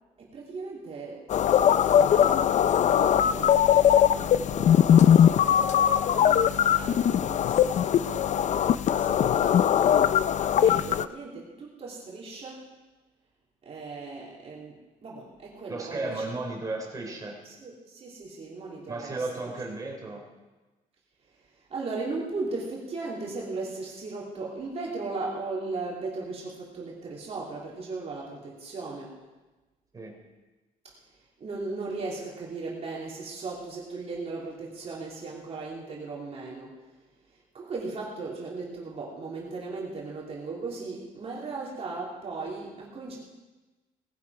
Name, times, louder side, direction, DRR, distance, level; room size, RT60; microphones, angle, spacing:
voice 1, 0.2-1.3 2.0-12.7 13.6-16.2 17.4-19.5 21.2-29.2 30.8-43.2, right 3 dB, 45° right, -4 dB, 3.0 m, -38 dB
sound 1, 1.3-11.1, left 9 dB, 50° left, 0.4 m, -21 dB
voice 2, 15.7-17.4 18.9-20.2 29.9-30.1, right 2 dB, 25° right, 0 dB, 3.4 m, -34 dB
19.0 x 10.5 x 4.8 m, 1.2 s
cardioid pair, 155°, 15 cm